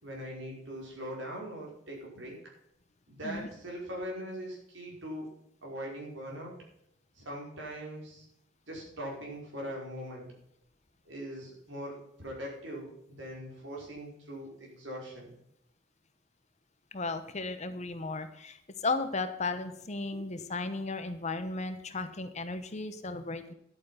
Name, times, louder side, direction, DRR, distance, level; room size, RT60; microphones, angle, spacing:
voice 1, 0.0-2.4 3.1-5.3 5.6-6.5 7.2-8.3 8.7-10.3 11.1-15.3, equal, 75° right, -2 dB, 5.2 m, -41 dB
voice 2, 16.9-23.5, left 3 dB, 35° left, 10 dB, 1.0 m, -35 dB
11.0 x 8.5 x 5.7 m, 0.76 s
head